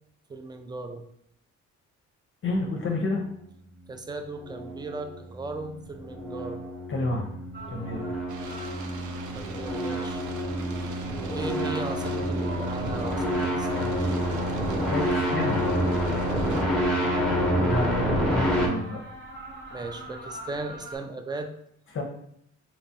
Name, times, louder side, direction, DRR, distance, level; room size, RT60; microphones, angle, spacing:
voice 1, 0.3-1.1 3.9-6.6 9.3-10.2 11.3-14.0 16.2-16.5 19.7-21.5, right 2 dB, 15° right, 6 dB, 0.4 m, -37 dB
voice 2, 2.4-3.2 6.9-7.3 7.7-8.1 14.9-15.7 17.6-19.0 21.9-22.0, left 2 dB, 40° left, 1 dB, 0.6 m, -29 dB
sound 1, 4.1-18.7, equal, 5° left, 0.8 m, -28 dB
sound 2, 7.5-21.0, right 1 dB, 40° right, 0.8 m, -44 dB
sound 3, 8.3-16.6, right 5 dB, 75° right, 0.5 m, -43 dB
3.3 x 3.0 x 2.8 m, 0.71 s
cardioid pair, 90°, 30 cm